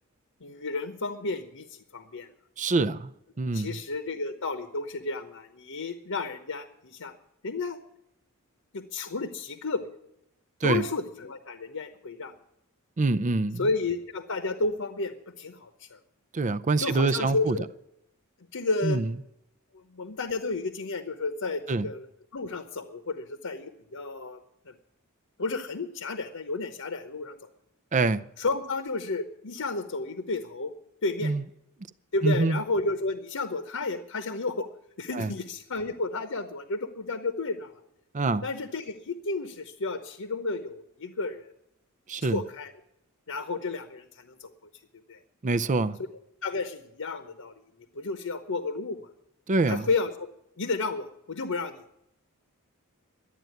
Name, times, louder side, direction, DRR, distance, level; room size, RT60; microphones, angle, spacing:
voice 1, 0.4-2.3 3.5-7.1 7.4-7.8 8.7-9.9 10.6-12.3 13.6-16.0 16.8-17.6 18.5-19.0 19.7-24.4 24.6-24.7 25.4-27.4 28.4-30.7 31.0-31.3 32.1-34.7 35.0-37.8 38.4-41.5 42.2-42.7 43.3-44.5 45.1-45.2 46.4-47.5 47.9-49.0 49.7-50.1 50.6-51.8, left 3 dB, 70° left, 1.0 m, -32 dB
voice 2, 2.6-3.1 3.4-3.8 10.6-10.8 13.0-13.7 16.3-17.6 18.8-19.1 21.7-21.9 27.9-28.2 31.2-31.4 32.2-32.6 35.1-35.3 38.1-38.5 42.1-42.4 45.4-46.0 49.5-49.9, right 3 dB, 35° right, 0.5 m, -25 dB
12.5 x 9.1 x 9.3 m
head